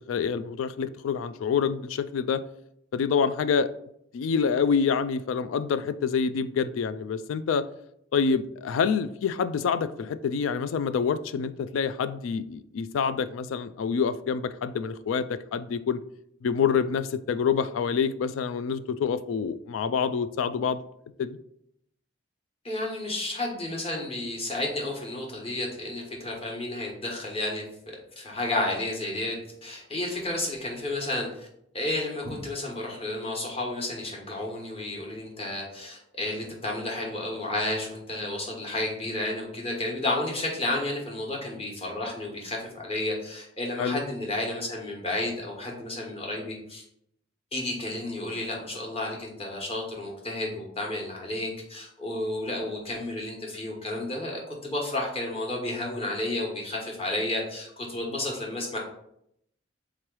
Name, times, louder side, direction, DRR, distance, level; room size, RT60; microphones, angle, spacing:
voice 1, 0.1-2.4 2.9-3.7 4.1-7.6 8.1-16.0 16.4-20.8 21.2-21.4 43.8-44.0, left 6 dB, 85° left, 13 dB, 0.3 m, -27 dB
voice 2, 22.6-27.6 28.2-31.5 31.7-46.8 47.5-58.8, left 2 dB, 30° left, -2 dB, 1.1 m, -32 dB
3.8 x 3.1 x 4.6 m, 0.74 s
head